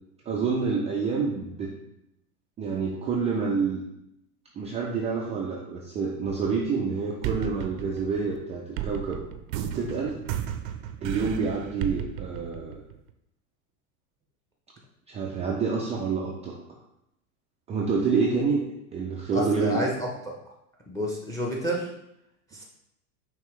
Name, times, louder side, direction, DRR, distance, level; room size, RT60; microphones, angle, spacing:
voice 1, 0.3-1.7 2.6-3.8 4.6-9.2 9.7-10.2 11.0-12.8 15.1-16.5 17.7-18.6 18.9-19.8, right 4 dB, 15° right, -3 dB, 0.3 m, -27 dB
sound 1, 6.3-6.9 7.2-13.1, right 10 dB, 60° right, 0.6 m, -34 dB
voice 2, 19.3-20.1 20.9-21.9 22.5-22.6, equal, 5° left, 0 dB, 0.7 m, -29 dB
5.5 x 2.9 x 3.1 m, 0.80 s
hypercardioid pair, 105°, 46 cm